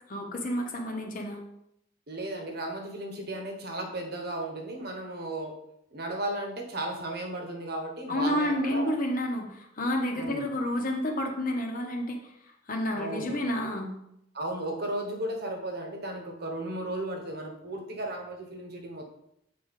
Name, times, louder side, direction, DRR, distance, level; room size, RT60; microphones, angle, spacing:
voice 1, 0.1-1.4 8.1-12.3 12.7-14.0, left 1 dB, 45° left, 2 dB, 1.0 m, -30 dB
voice 2, 2.1-5.6 5.9-9.0 10.2-10.5 12.9-13.5 14.3-19.0, right 1 dB, 55° right, 3 dB, 1.2 m, -35 dB
7.8 x 4.7 x 3.7 m, 0.77 s
head